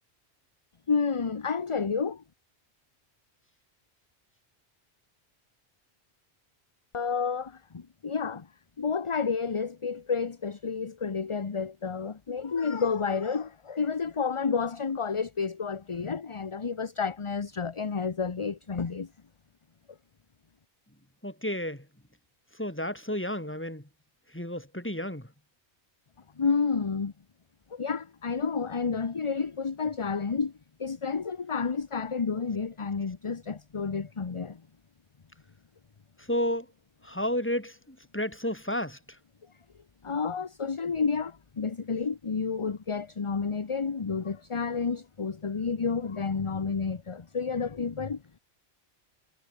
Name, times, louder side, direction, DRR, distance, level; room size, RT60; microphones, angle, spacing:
voice 1, 0.9-2.2 6.9-8.5 8.8-19.1 26.4-27.1 27.7-30.5 30.8-34.6 40.0-48.4, left 5 dB, 30° left, 0.8 m, -30 dB
voice 2, 21.2-21.9 22.6-23.8 24.3-25.3 36.3-36.7 37.0-39.0, left 1 dB, 10° left, 3.6 m, -31 dB
omnidirectional pair, 1.1 m